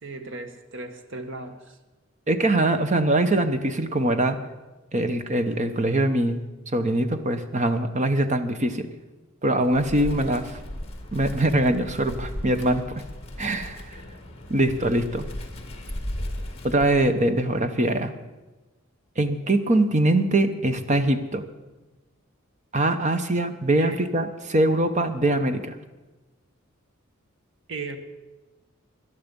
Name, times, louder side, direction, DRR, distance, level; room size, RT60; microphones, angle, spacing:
voice 1, 0.0-1.8 23.8-24.0 27.7-28.0, right 3 dB, 60° right, 7 dB, 1.3 m, -36 dB
voice 2, 2.3-4.4 4.9-6.4 6.7-8.9 9.4-10.6 11.1-12.8 13.4-13.8 14.5-15.3 16.6-18.1 19.2-21.4 22.7-25.8, right 1 dB, 35° right, 9 dB, 1.0 m, -23 dB
Wind, 9.6-17.4, left 1 dB, 30° left, 1.9 m, -36 dB
18.0 x 11.5 x 5.4 m, 1.2 s
head